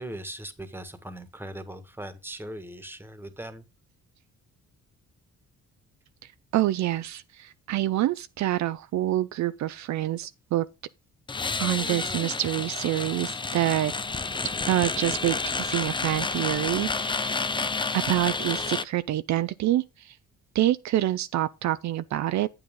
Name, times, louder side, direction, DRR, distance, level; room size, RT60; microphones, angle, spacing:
voice 1, 0.0-3.6, right 1 dB, 5° right, 1.5 m, -39 dB
voice 2, 6.5-10.7 11.6-13.9 14.7-17.4 17.9-20.2 20.5-22.5, right 14 dB, 65° right, 0.5 m, -27 dB
sound 1, 11.3-18.8, left 4 dB, 15° left, 0.6 m, -30 dB
8.8 x 8.1 x 3.6 m
cardioid pair, 90°, 30 cm